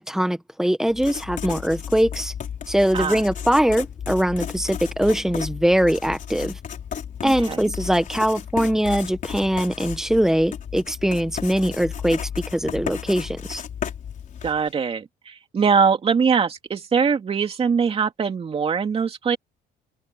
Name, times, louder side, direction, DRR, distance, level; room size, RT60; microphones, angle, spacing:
voice 1, 0.0-2.3 2.7-6.6 7.2-13.6, right 1 dB, 5° right, 1.4 m, -22 dB
Writing, 0.9-14.7, left 8 dB, 50° left, 4.2 m, -34 dB
voice 2, 7.2-7.6 14.4-19.4, right 6 dB, 35° right, 2.6 m, -22 dB
cardioid pair, 110°, 17 cm